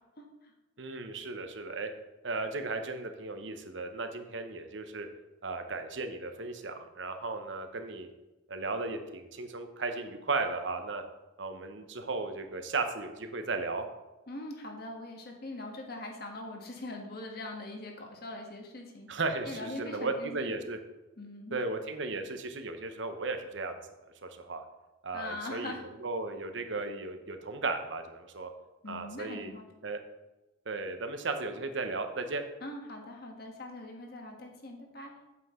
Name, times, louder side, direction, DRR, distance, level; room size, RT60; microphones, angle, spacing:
voice 1, 0.8-1.9 2.2-5.1 5.4-8.1 8.5-11.0 11.4-13.9 19.1-20.8 21.5-23.8 24.2-24.6 25.0-28.5 28.9-29.5 29.8-30.0 30.7-32.4, right 3 dB, 70° right, 7 dB, 0.9 m, -35 dB
voice 2, 14.3-19.1 19.4-20.5 21.2-21.6 25.1-25.8 28.8-29.7 32.6-35.1, left 2 dB, 50° left, 2 dB, 1.4 m, -42 dB
8.3 x 7.6 x 3.8 m, 1.1 s
head